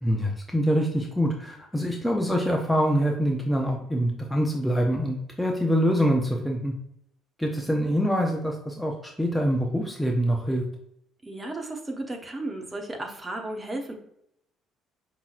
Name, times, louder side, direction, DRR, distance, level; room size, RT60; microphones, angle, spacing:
voice 1, 0.0-6.7 7.4-10.6, equal, 5° left, 0 dB, 0.7 m, -25 dB
voice 2, 11.2-13.9, right 2 dB, 20° right, 2 dB, 0.9 m, -34 dB
5.3 x 3.0 x 2.5 m, 0.75 s
figure-of-eight pair, 50°, 0 cm